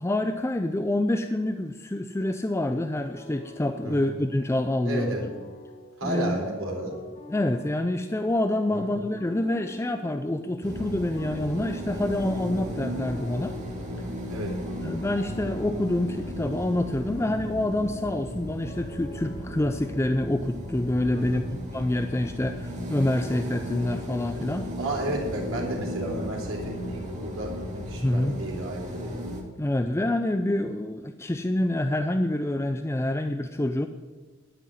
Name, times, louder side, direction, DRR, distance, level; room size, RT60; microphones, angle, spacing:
voice 1, 0.0-5.1 6.0-6.4 7.3-13.6 14.8-24.7 28.0-28.3 29.6-33.9, left 1 dB, 15° left, 7 dB, 0.5 m, -27 dB
sound 1, 3.0-21.2, left 2 dB, 30° left, 1.8 m, -47 dB
voice 2, 4.8-5.3 6.0-6.9 8.7-8.9 14.3-14.5 21.1-21.4 24.8-29.2, right 1 dB, 80° right, -1 dB, 3.9 m, -33 dB
sound 2, 10.6-29.4, equal, 35° right, 2.5 m, -35 dB
12.5 x 6.1 x 9.2 m, 1.4 s
head